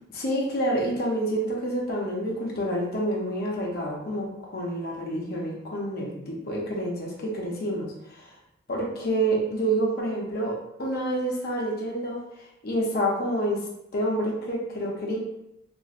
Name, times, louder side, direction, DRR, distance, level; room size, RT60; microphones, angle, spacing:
voice 1, 0.1-7.9 8.7-12.2 12.6-13.6 13.9-15.2, right 1 dB, 50° left, -2 dB, 0.7 m, -28 dB
3.0 x 2.5 x 2.4 m, 0.82 s
head